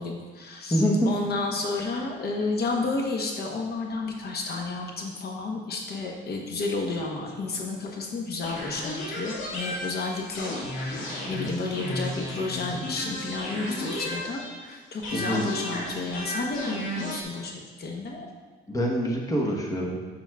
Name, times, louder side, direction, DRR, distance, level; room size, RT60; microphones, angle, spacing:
voice 1, 0.0-18.3, left 3 dB, 55° left, 1 dB, 1.0 m, -31 dB
voice 2, 0.7-1.1 15.1-15.5 18.7-20.0, equal, 15° left, -1 dB, 1.0 m, -25 dB
sound 1, 8.4-14.7 15.0-17.2, left 1 dB, 85° left, 1.8 m, -34 dB
7.2 x 6.9 x 2.3 m, 1.4 s
cardioid pair, 90°, 20 cm